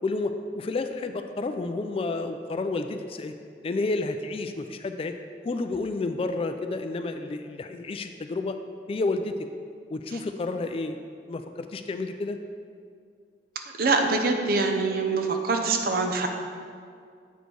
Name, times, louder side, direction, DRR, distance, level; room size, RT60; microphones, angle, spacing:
voice 1, 0.0-3.3 3.6-5.1 5.4-8.6 8.9-9.3 9.9-11.0 11.3-12.4, left 3 dB, 30° left, 7 dB, 0.3 m, -30 dB
voice 2, 13.8-16.3, right 3 dB, 55° right, 4 dB, 0.7 m, -24 dB
8.0 x 4.4 x 4.6 m, 2.2 s
head